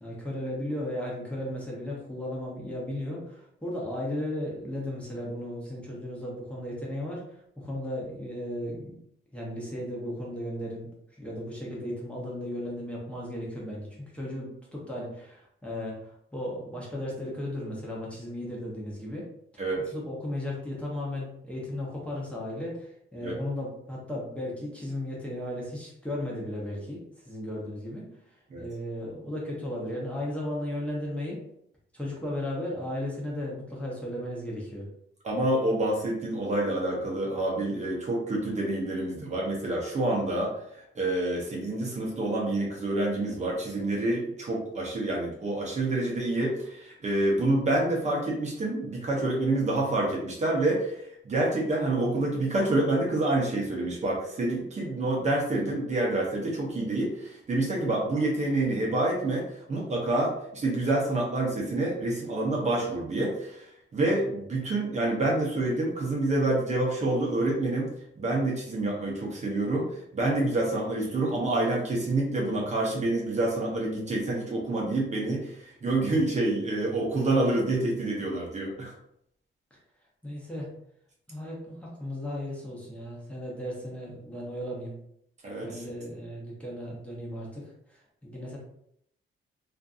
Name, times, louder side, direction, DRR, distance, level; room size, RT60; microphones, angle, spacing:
voice 1, 0.0-9.0 9.3-10.9 11.2-13.9 14.1-19.3 19.5-19.6 19.9-27.0 27.2-31.4 31.9-34.9 79.7-79.8 80.2-80.7 81.3-84.9 85.6-88.6, left 1 dB, 5° left, -5 dB, 0.7 m, -35 dB
voice 2, 19.6-19.9 23.2-23.4 28.5-28.6 35.2-40.5 41.0-67.9 68.2-78.9 85.4-85.8, right 2 dB, 35° right, -2 dB, 0.6 m, -27 dB
2.5 x 2.4 x 2.3 m, 0.73 s
wide cardioid pair, 145°, 21 cm